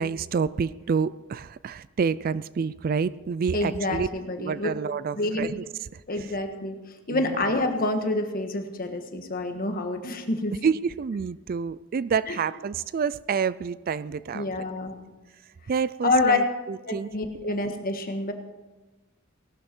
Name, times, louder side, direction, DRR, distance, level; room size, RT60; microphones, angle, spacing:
voice 1, 0.0-4.1 4.4-5.6 5.9-6.3 7.1-7.4 10.6-14.5 15.7-17.1, right 6 dB, 45° right, 18 dB, 0.3 m, -28 dB
voice 2, 3.5-4.7 5.1-5.5 6.1-6.8 7.1-10.5 12.3-12.4 14.3-15.0 16.0-16.4 16.9-18.3, left 2 dB, 45° left, 6 dB, 1.5 m, -27 dB
18.5 x 12.0 x 4.5 m, 1.2 s
head